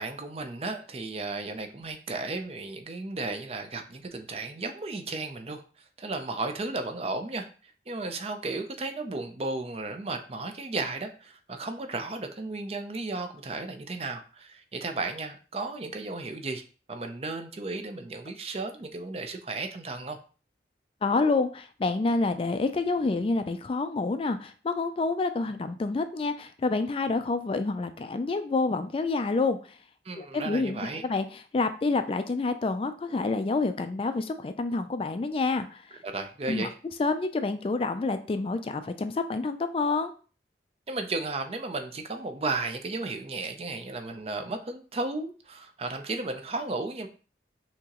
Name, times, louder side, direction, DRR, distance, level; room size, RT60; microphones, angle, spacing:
voice 1, 0.0-5.6 6.0-16.6 16.9-20.2 30.0-31.0 36.0-36.7 40.9-47.1, right 3 dB, 35° right, 6 dB, 0.5 m, -34 dB
voice 2, 21.0-29.6 30.2-35.8 36.5-36.7 37.0-40.1, left 3 dB, 30° left, 9 dB, 0.3 m, -28 dB
6.0 x 2.9 x 2.9 m, 0.38 s
head